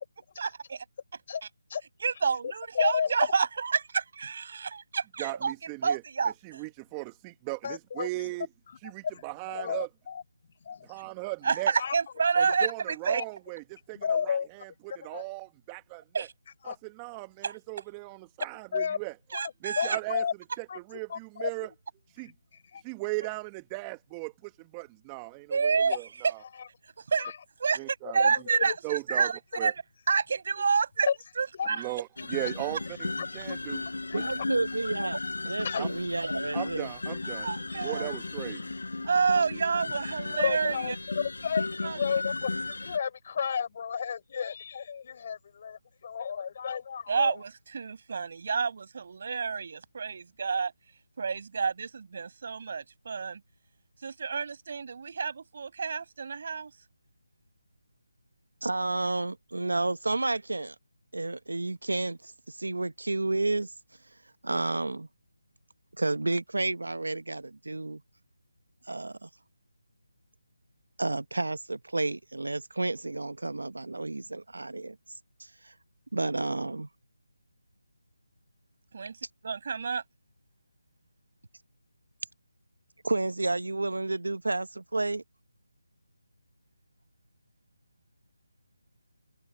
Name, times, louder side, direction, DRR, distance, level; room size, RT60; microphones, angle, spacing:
voice 1, 0.4-0.8 1.4-1.5 2.0-5.6 5.8-6.6 11.4-13.2 16.1-16.3 17.4-17.6 19.3-20.0 23.2-23.3 25.5-26.0 27.0-27.3 27.6-31.1 31.4-31.9 37.4-38.1 39.0-41.0 41.8-42.0 47.1-50.7 51.2-53.4 54.0-56.7 78.9-80.0, right 5 dB, 45° right, 5.6 m, -29 dB
voice 2, 2.8-3.1 7.6-8.3 9.1-9.2 9.5-10.2 10.7-10.9 11.8-12.0 13.9-14.5 14.9-15.2 16.7-16.8 18.7-19.0 19.3-20.3 20.7-20.8 21.1-21.8 22.7-22.8 28.7-28.8 31.1-31.2 31.6-31.8 33.2-33.3 34.1-34.3 35.6-35.8 40.4-40.9 41.4-47.4, left 7 dB, 40° left, 5.7 m, -32 dB
voice 3, 5.2-6.0 6.4-8.5 8.8-9.9 10.8-11.7 12.4-16.3 16.7-19.1 19.6-20.2 20.6-21.7 22.1-22.3 22.8-26.4 27.8-28.2 28.8-29.3 29.6-29.7 31.8-33.8 34.1-34.2 35.8-35.9 36.5-37.5 37.8-38.6, right 26 dB, 15° right, 1.3 m, -37 dB
sound 1, 32.2-43.0, left 3 dB, 75° left, 7.0 m, -35 dB
voice 4, 34.1-35.2 35.4-36.9 58.6-60.7 61.1-63.7 64.4-65.1 66.0-68.0 68.9-69.3 71.0-75.0 75.4-75.7 76.1-76.9 83.0-85.2, right 2 dB, 80° right, 1.0 m, -31 dB
figure-of-eight pair, 160°, 0 cm